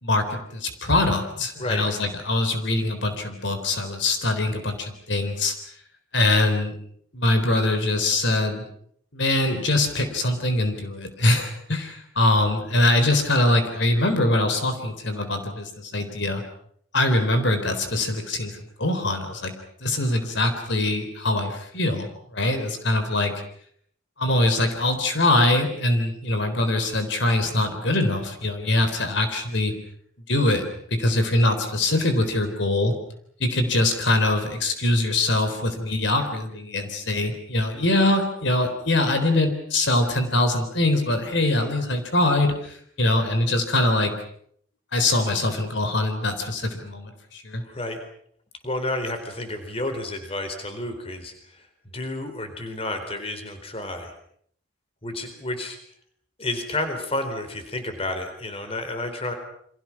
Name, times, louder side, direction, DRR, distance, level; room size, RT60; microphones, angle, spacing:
voice 1, 0.0-5.5 6.1-6.8 7.1-8.6 9.1-16.4 16.9-19.5 19.8-23.3 24.2-29.7 30.3-30.6 30.9-32.9 33.4-44.1 44.9-47.6, left 2 dB, 65° left, 7 dB, 3.9 m, -23 dB
voice 2, 47.6-48.0 48.6-51.6 51.9-54.1 55.0-55.8 56.4-59.3, left 2 dB, 30° left, 7 dB, 4.2 m, -30 dB
29.5 x 25.5 x 6.1 m, 0.65 s
head